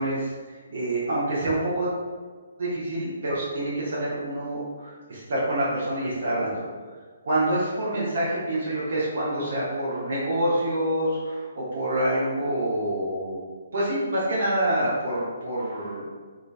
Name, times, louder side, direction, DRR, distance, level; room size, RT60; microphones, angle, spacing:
voice 1, 0.0-1.9 2.6-6.7 7.2-13.4 13.7-16.1, right 1 dB, 50° right, -8 dB, 1.2 m, -27 dB
3.8 x 3.6 x 2.4 m, 1.5 s
figure-of-eight pair, 130°, 0 cm